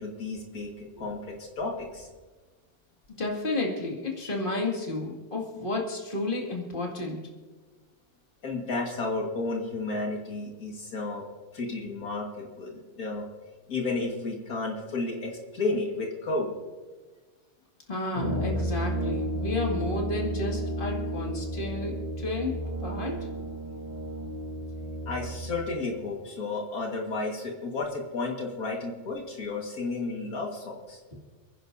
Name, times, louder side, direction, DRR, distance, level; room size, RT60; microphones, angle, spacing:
voice 1, 0.0-2.1 8.4-11.2 11.5-13.2 13.7-16.5 25.1-31.0, left 3 dB, 80° left, 0 dB, 2.3 m, -32 dB
voice 2, 3.2-7.2 17.9-22.5 22.8-23.3, left 2 dB, 35° left, -1 dB, 2.4 m, -31 dB
Brass instrument, 18.1-25.6, right 1 dB, 60° left, 3.9 m, -32 dB
29.0 x 10.5 x 2.7 m, 1.3 s
omnidirectional pair, 1.5 m